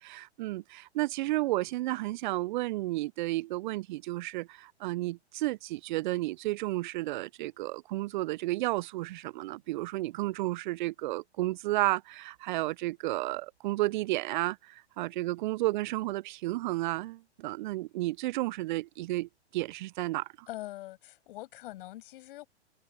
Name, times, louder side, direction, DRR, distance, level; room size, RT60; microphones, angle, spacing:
voice 1, 0.0-20.5, right 18 dB, 45° right, 0.7 m, -32 dB
voice 2, 20.5-22.5, left 16 dB, 50° left, 7.5 m, -43 dB
figure-of-eight pair, 115°, 34 cm